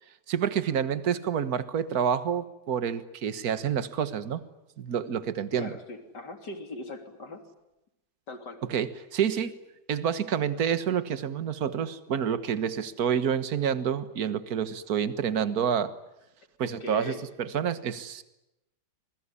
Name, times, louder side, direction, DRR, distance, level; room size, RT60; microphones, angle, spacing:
voice 1, 0.3-4.4 4.8-5.7 8.7-9.5 9.9-15.9 16.6-18.2, right 8 dB, 60° right, 13 dB, 1.8 m, -28 dB
voice 2, 5.6-7.4 8.3-8.6 9.3-9.4 16.6-17.2, left 2 dB, 70° left, 6 dB, 3.6 m, -40 dB
27.0 x 21.5 x 9.8 m, 0.91 s
omnidirectional pair, 1.9 m